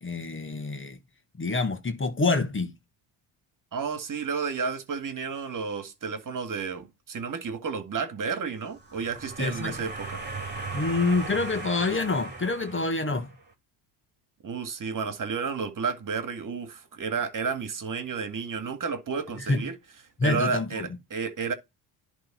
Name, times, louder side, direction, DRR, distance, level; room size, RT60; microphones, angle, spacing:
voice 1, 0.0-1.0 1.4-2.7 9.4-9.8 10.7-13.3 19.5-19.7 20.2-20.9, left 3 dB, 25° left, 1.8 m, -27 dB
voice 2, 3.7-10.2 14.4-19.8 20.2-21.5, right 5 dB, 40° right, 2.1 m, -31 dB
sound 1, 8.7-13.4, right 3 dB, 20° right, 3.5 m, -38 dB
11.0 x 3.6 x 4.6 m
supercardioid pair, 75°, 46 cm